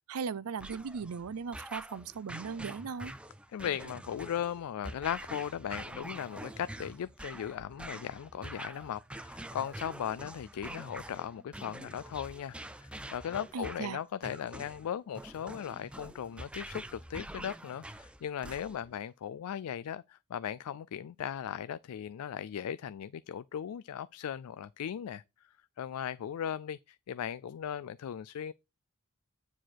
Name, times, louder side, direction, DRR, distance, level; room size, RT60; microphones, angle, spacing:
voice 1, 0.1-3.1 13.5-14.0, right 5 dB, 75° right, 0.5 m, -38 dB
sound 1, 0.6-19.0, right 1 dB, 5° right, 0.4 m, -46 dB
voice 2, 3.5-25.2 25.8-28.5, left 9 dB, 75° left, 0.3 m, -38 dB
9.3 x 4.4 x 4.5 m
head